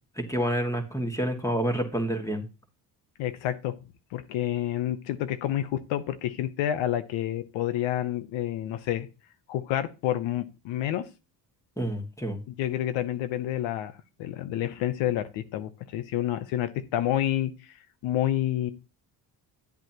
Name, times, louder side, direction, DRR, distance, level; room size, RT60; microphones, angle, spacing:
voice 1, 0.2-2.4 11.8-12.4, equal, 5° left, 5 dB, 2.1 m, -28 dB
voice 2, 3.2-3.7 4.1-9.1 9.5-11.0 12.5-13.9 14.2-17.5 18.0-18.7, left 12 dB, 90° left, 11 dB, 0.9 m, -29 dB
10.5 x 7.9 x 3.0 m, 0.29 s
cardioid pair, 85°, 44 cm